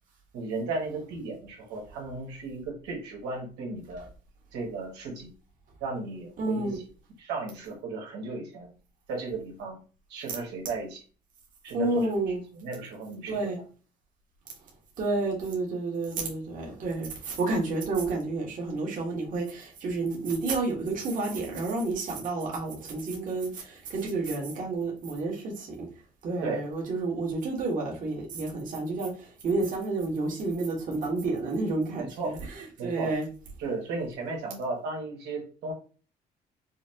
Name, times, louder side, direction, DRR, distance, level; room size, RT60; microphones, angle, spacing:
voice 1, 0.3-4.1 4.5-5.3 5.8-6.8 7.2-8.7 9.1-9.8 10.1-11.0 11.6-12.1 12.5-13.4 26.4-26.6 32.0-32.3 32.8-33.1 33.6-35.7, right 3 dB, 85° right, 1.6 m, -35 dB
voice 2, 6.4-6.8 11.7-12.4 13.3-13.6 15.0-25.9 26.2-33.3, right 3 dB, 50° right, 1.4 m, -30 dB
5.6 x 2.1 x 2.8 m
cardioid pair, 110°, 17 cm